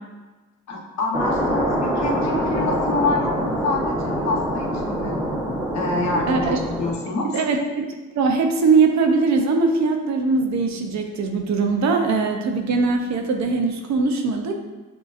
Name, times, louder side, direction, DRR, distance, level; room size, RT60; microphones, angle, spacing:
voice 1, 0.7-3.4 3.6-5.2 5.7-7.3, left 3 dB, 60° left, 0 dB, 1.0 m, -26 dB
sound 1, 1.1-6.9, equal, 15° right, 0.9 m, -25 dB
voice 2, 6.3-6.6 7.3-7.9 8.1-14.5, right 4 dB, 65° right, 4 dB, 0.6 m, -21 dB
6.2 x 2.9 x 2.5 m, 1.2 s
cardioid pair, 90°, 30 cm